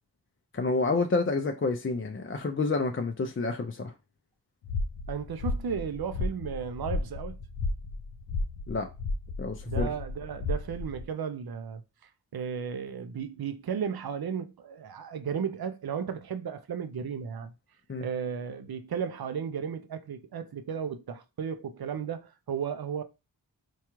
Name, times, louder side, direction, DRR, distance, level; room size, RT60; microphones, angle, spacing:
voice 1, 0.5-3.9 8.7-8.9 9.4-9.9 17.9-18.1, left 3 dB, 30° left, 0.4 m, -29 dB
sound 1, 4.6-11.0, left 3 dB, 90° left, 0.5 m, -33 dB
voice 2, 5.1-7.4 9.7-11.8 12.3-17.5 18.0-23.0, right 7 dB, 60° right, 0.5 m, -34 dB
4.6 x 2.3 x 3.0 m
cardioid pair, 40°, 43 cm